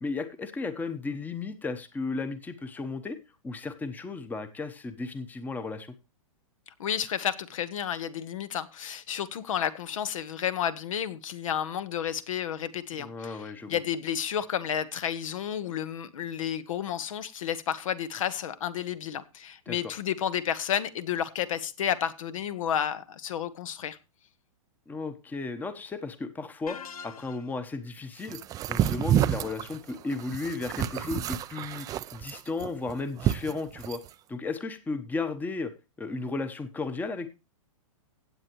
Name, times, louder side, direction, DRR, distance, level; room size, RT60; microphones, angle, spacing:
voice 1, 0.0-3.2 3.4-5.9 13.0-13.8 19.7-19.8 24.9-26.8 27.0-28.4 28.7-34.0 34.3-35.7 36.0-37.3, left 3 dB, 10° left, 0.9 m, -34 dB
voice 2, 6.8-24.0, left 9 dB, 70° left, 1.2 m, -31 dB
sound 1, 26.7-27.7, left 6 dB, 90° left, 1.0 m, -43 dB
sound 2, 28.3-34.1, right 11 dB, 20° right, 0.4 m, -29 dB
16.0 x 8.3 x 3.0 m
hypercardioid pair, 135°, 18 cm